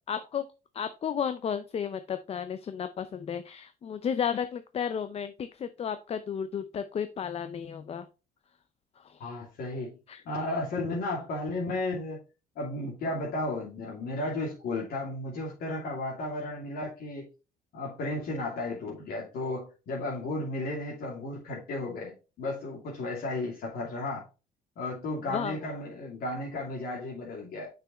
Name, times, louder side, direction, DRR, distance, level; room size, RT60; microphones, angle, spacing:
voice 1, 0.1-0.4 0.7-8.1 9.0-9.3 10.1-10.2 25.3-25.6, left 7 dB, 35° left, 11 dB, 0.6 m, -33 dB
voice 2, 9.2-10.0 10.2-12.2 12.6-17.3 17.7-24.2 24.8-27.7, left 2 dB, 65° left, -3 dB, 2.7 m, -34 dB
6.8 x 6.0 x 3.1 m, 0.31 s
cardioid pair, 110°, 17 cm